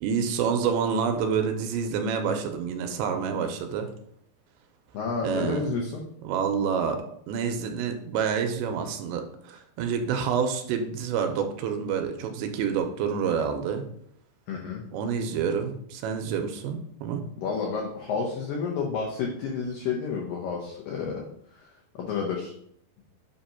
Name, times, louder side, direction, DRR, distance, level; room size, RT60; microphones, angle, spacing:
voice 1, 0.0-3.9 5.2-5.8 6.2-13.9 14.9-17.2, right 6 dB, 80° right, 5 dB, 2.7 m, -28 dB
voice 2, 4.9-6.0 14.5-14.8 17.4-21.2 21.6-21.7 22.0-22.5, left 5 dB, 85° left, -1 dB, 2.0 m, -30 dB
8.1 x 2.9 x 5.6 m, 0.69 s
omnidirectional pair, 5.2 m